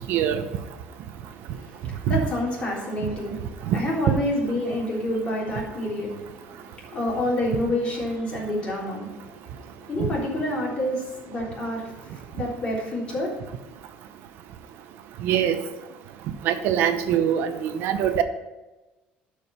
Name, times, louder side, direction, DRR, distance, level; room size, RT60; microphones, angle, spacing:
voice 1, 0.1-0.4 2.1-2.2 3.7-3.8 4.1-4.2 15.2-15.6 16.4-18.2, right 10 dB, 70° right, 9 dB, 0.8 m, -22 dB
voice 2, 1.4-9.4 9.9-13.5, left 1 dB, 30° left, -4 dB, 3.7 m, -28 dB
12.0 x 5.1 x 5.7 m, 1.1 s
cardioid pair, 160°, 4 cm